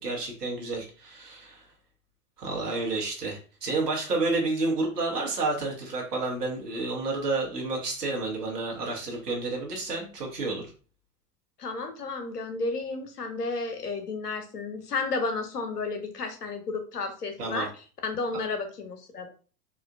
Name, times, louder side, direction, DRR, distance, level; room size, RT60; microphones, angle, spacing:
voice 1, 0.0-1.7 2.4-10.6 17.4-17.7, right 3 dB, 90° right, -2 dB, 1.2 m, -30 dB
voice 2, 11.6-17.7 18.0-19.3, left 3 dB, 90° left, 7 dB, 0.8 m, -32 dB
4.2 x 2.4 x 2.4 m, 0.38 s
figure-of-eight pair, 90°, 46 cm